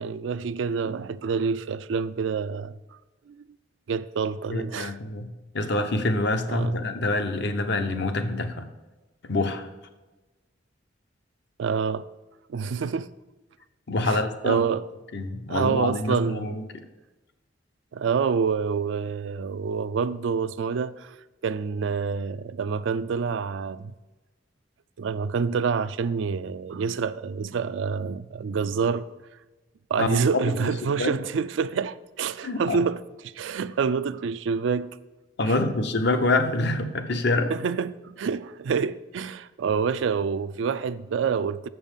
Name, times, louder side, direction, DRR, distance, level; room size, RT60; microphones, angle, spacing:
voice 1, 0.0-2.8 3.3-3.5 3.9-4.9 6.5-6.8 11.6-12.1 12.5-13.1 14.0-14.9 15.5-16.6 17.9-21.1 21.4-23.9 25.0-29.1 29.9-35.0 35.5-35.6 36.5-36.6 37.5-41.7, right 5 dB, 75° right, 0.4 m, -27 dB
voice 2, 4.5-5.3 5.5-8.7 9.2-9.7 13.9-14.6 15.1-16.6 30.0-30.7 31.0-31.1 32.4-32.8 35.4-37.5, left 2 dB, 65° left, 0.8 m, -26 dB
7.4 x 5.5 x 7.1 m
head